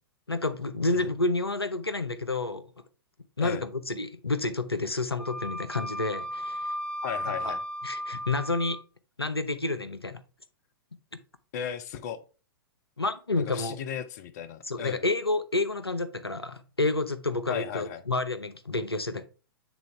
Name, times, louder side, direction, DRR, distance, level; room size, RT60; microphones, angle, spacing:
voice 1, 0.3-2.7 3.4-6.7 7.3-7.5 7.8-8.8 9.2-10.2 13.0-13.8 14.7-19.2, left 2 dB, 90° left, 0.6 m, -29 dB
Wind instrument woodwind instrument, 5.2-8.8, equal, 5° left, 0.8 m, -35 dB
voice 2, 7.0-7.6 11.5-12.2 13.4-15.0 17.5-18.0, left 9 dB, 45° left, 0.6 m, -36 dB
8.1 x 3.8 x 3.3 m
figure-of-eight pair, 105°, 13 cm